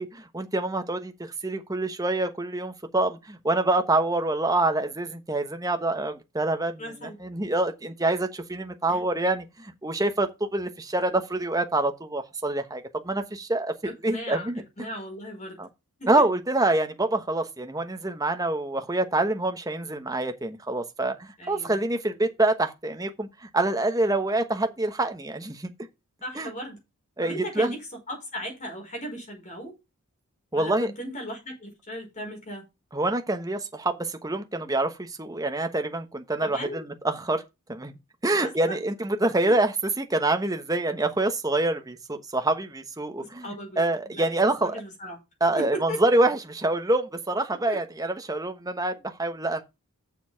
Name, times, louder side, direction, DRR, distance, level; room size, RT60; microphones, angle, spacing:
voice 1, 0.0-14.6 15.6-15.7 16.1-21.2 21.5-25.7 26.4-26.5 27.2-27.7 30.5-30.9 32.9-37.4 37.7-37.9 38.2-43.5 43.8-44.7 45.4-49.6, right 2 dB, 15° right, 1.1 m, -26 dB
voice 2, 6.8-7.2 8.9-9.0 13.8-14.5 14.8-15.6 16.0-16.1 21.4-21.8 26.2-26.8 27.2-27.8 28.1-29.7 30.5-32.6 36.4-36.9 38.4-38.8 39.5-39.6 43.2-45.2 45.6-46.0 47.7-47.8, equal, 35° left, 4.8 m, -37 dB
7.0 x 7.0 x 5.8 m
head